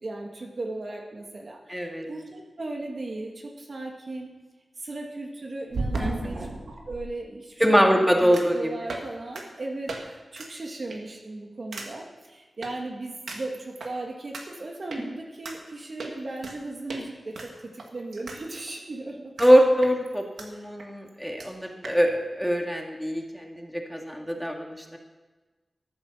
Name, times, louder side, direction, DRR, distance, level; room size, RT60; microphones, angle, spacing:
voice 1, 0.0-4.3 4.8-6.5 6.9-19.3 20.5-20.7, right 2 dB, 60° right, 1 dB, 1.9 m, -37 dB
voice 2, 1.7-2.1 6.0-6.4 7.6-8.6 19.4-25.0, equal, ahead, 2 dB, 1.9 m, -23 dB
sound 1, 3.2-3.3 5.7-7.0 8.3-8.6 8.9-9.1 9.3-9.4 9.9-10.0 10.3-10.5 10.9-11.2 11.7-11.9 12.6-12.7 13.3-13.9 14.3-14.4 14.9-15.0 15.4-15.6 16.0-16.6 16.9-17.0 17.3-18.4 18.7-18.8 19.4-19.5 19.8-20.5 20.8-20.9 21.1-21.2 21.4-21.5 21.8-22.0, right 2 dB, 90° right, 1.7 m, -35 dB
13.5 x 7.9 x 6.5 m, 1.2 s
wide cardioid pair, 65°, 0 cm